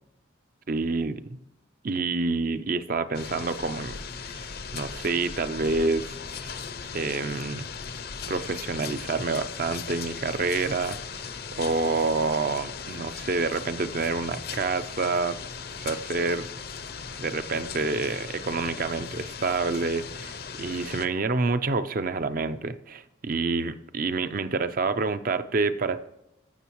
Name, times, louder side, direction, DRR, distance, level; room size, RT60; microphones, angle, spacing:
voice 1, 0.7-1.4 1.8-6.5 6.9-7.7 8.3-11.3 11.6-15.4 15.8-16.5 17.2-26.0, right 3 dB, 45° right, 11 dB, 0.5 m, -28 dB
sound 1, 3.1-21.1, left 6 dB, 50° left, 0.6 m, -38 dB
15.5 x 6.4 x 3.0 m, 0.87 s
head